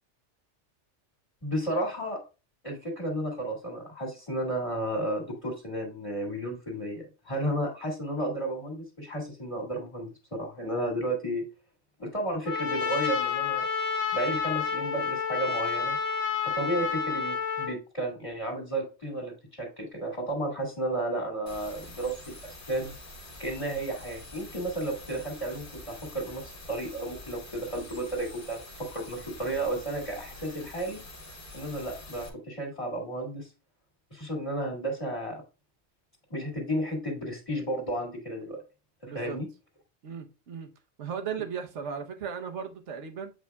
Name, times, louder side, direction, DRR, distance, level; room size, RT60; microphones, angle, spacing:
voice 1, 1.4-2.2 2.6-11.5 12.0-13.6 14.1-16.0 16.5-22.9 23.4-31.0 31.5-33.5 34.1-35.4 36.3-38.6 39.0-39.5, right 1 dB, 25° left, 2.1 m, -33 dB
Trumpet, 12.5-17.7, left 6 dB, 70° left, 1.3 m, -29 dB
sound 1, 21.5-32.3, left 1 dB, 45° left, 1.8 m, -46 dB
voice 2, 39.0-39.4 40.0-40.7 41.0-43.3, right 7 dB, 75° right, 1.2 m, -36 dB
8.0 x 5.1 x 2.3 m
omnidirectional pair, 1.2 m